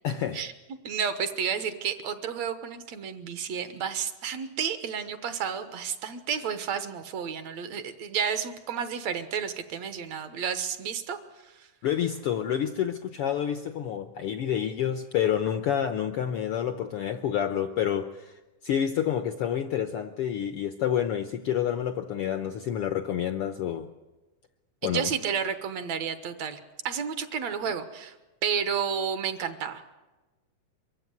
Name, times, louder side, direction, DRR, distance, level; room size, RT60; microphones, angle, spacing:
voice 1, 0.0-0.4 11.8-23.9 24.8-25.1, left 9 dB, 70° left, 9 dB, 1.4 m, -28 dB
voice 2, 0.8-11.2 11.5-11.7 24.8-26.6 26.8-28.2 28.4-30.0, right 7 dB, 65° right, 10 dB, 2.3 m, -31 dB
23.5 x 15.0 x 9.6 m, 1.1 s
omnidirectional pair, 3.6 m